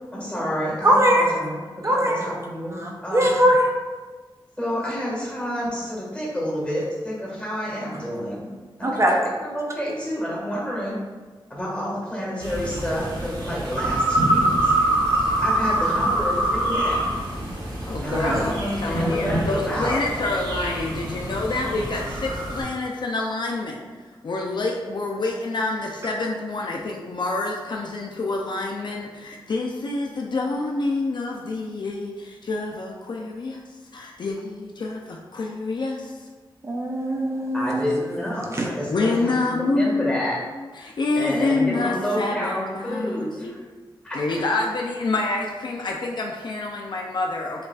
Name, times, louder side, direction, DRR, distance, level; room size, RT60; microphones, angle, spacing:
voice 1, 0.0-3.4 4.6-8.5 8.8-9.0 9.4-11.0 11.5-14.7 15.4-17.1 18.0-20.0 37.5-40.4 41.1-43.6 44.0-44.2, equal, 15° left, -5 dB, 1.5 m, -29 dB
voice 2, 0.8-1.3 1.8-2.3 2.7-3.7 8.8-9.3 18.1-18.4 36.6-37.8 38.5-38.7, equal, 35° right, 0 dB, 0.5 m, -21 dB
sound 1, 12.4-22.6, right 1 dB, 60° right, 1.4 m, -25 dB
voice 3, 17.9-23.8 24.2-33.6 33.9-36.2 38.9-40.2 40.8-43.5 44.1-47.7, left 3 dB, 60° left, 0 dB, 0.4 m, -27 dB
6.5 x 2.4 x 2.3 m, 1.4 s
wide cardioid pair, 75°, 9 cm